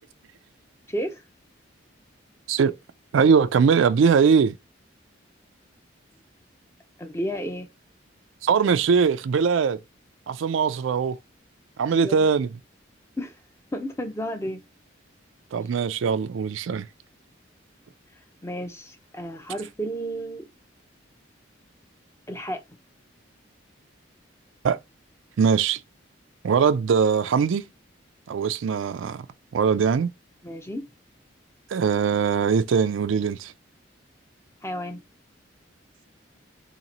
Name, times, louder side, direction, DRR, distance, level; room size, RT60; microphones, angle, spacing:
voice 1, 0.9-1.2 7.0-7.7 12.0-12.3 13.2-13.3 13.7-14.6 18.4-20.5 22.3-22.6 30.4-30.9 34.6-35.0, equal, 15° left, 0.5 m, -32 dB
voice 2, 3.1-4.6 8.4-9.8 10.3-11.2 11.8-12.5 15.5-16.9 24.6-24.8 25.4-25.8 26.4-27.6 28.3-29.3 29.5-30.1 31.7-33.5, right 6 dB, 80° right, 0.4 m, -21 dB
2.9 x 2.9 x 4.0 m
head